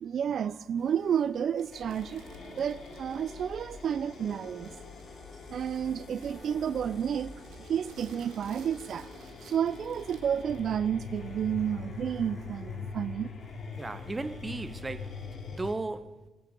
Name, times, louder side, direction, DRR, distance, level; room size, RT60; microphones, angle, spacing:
voice 1, 0.0-2.2 2.6-4.7 5.5-7.3 7.6-9.1 9.4-13.3, right 8 dB, 60° right, 0.4 m, -31 dB
sound 1, 0.8-15.7, right 1 dB, 10° left, 5.7 m, -56 dB
sound 2, 1.6-11.0, right 6 dB, 85° right, 2.1 m, -58 dB
sound 3, 1.7-15.7, left 5 dB, 55° left, 2.5 m, -44 dB
voice 2, 13.8-15.2 15.5-16.2, right 2 dB, 20° right, 0.8 m, -36 dB
18.5 x 10.0 x 5.4 m
cardioid pair, 90°, 0 cm